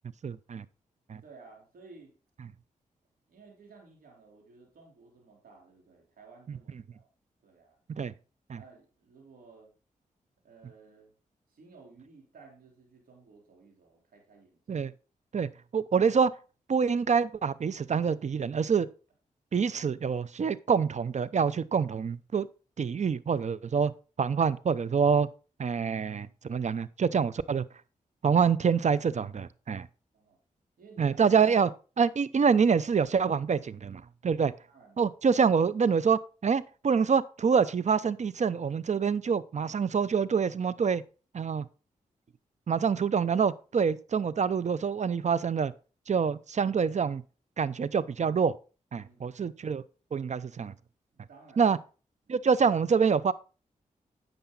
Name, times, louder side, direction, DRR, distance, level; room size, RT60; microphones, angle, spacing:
voice 1, 0.2-0.6 1.1-1.2 8.0-8.1 8.5-8.6 14.7-14.9 15.3-16.3 16.7-18.9 19.5-22.5 22.8-23.9 24.2-25.3 25.6-27.6 28.2-29.9 31.0-34.5 35.0-41.0 41.3-41.7 42.7-45.7 46.1-47.2 47.6-48.6 48.9-49.8 50.1-50.7 51.6-51.8 52.3-53.3, right 6 dB, 55° right, 0.7 m, -26 dB
voice 2, 1.2-2.2 3.3-7.1 7.4-7.8 8.5-9.7 10.4-11.1 11.5-14.9 30.1-30.4 30.8-31.4 32.0-32.2 34.4-35.1 49.0-49.4 51.1-51.7 52.3-52.5, right 4 dB, 80° right, 3.7 m, -55 dB
10.5 x 6.7 x 4.0 m
cardioid pair, 50°, 15 cm